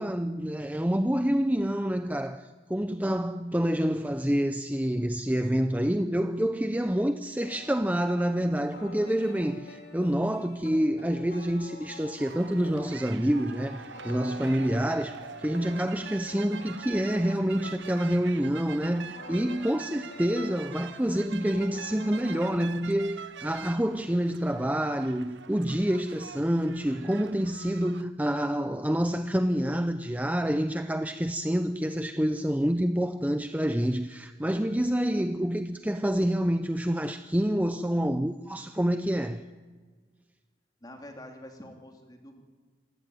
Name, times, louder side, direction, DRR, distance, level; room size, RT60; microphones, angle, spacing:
voice 1, 0.0-39.4, equal, 10° right, 0.6 m, -27 dB
sound 1, 7.4-22.7, left 2 dB, 65° left, 4.4 m, -48 dB
sound 2, 12.2-28.0, right 7 dB, 85° right, 0.8 m, -44 dB
voice 2, 40.8-42.4, left 1 dB, 20° left, 2.9 m, -46 dB
27.0 x 16.5 x 9.5 m
head